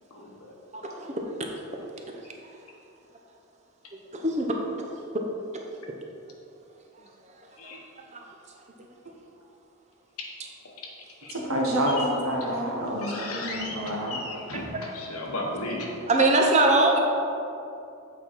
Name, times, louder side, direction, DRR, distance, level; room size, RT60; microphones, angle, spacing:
voice 1, 0.7-1.1 4.1-4.5 8.1-8.2 13.9-14.0 14.5-14.8 16.1-17.0, right 2 dB, 30° right, 1 dB, 0.7 m, -22 dB
voice 2, 11.3-14.2, equal, 75° right, -2 dB, 1.4 m, -28 dB
voice 3, 13.0-15.9, left 2 dB, 85° left, -1 dB, 1.2 m, -35 dB
8.0 x 4.7 x 4.2 m, 2.7 s
head